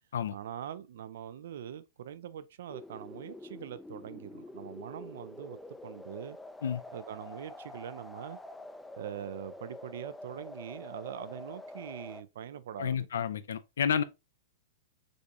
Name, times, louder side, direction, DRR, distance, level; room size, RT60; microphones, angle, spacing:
voice 1, 0.3-6.4 6.9-8.4 9.0-13.1, right 9 dB, 60° right, 0.4 m, -43 dB
sound 1, 2.7-12.2, left 2 dB, 5° left, 0.4 m, -47 dB
voice 2, 12.8-14.0, left 8 dB, 70° left, 0.4 m, -30 dB
5.2 x 3.4 x 2.7 m
figure-of-eight pair, 105°, 0 cm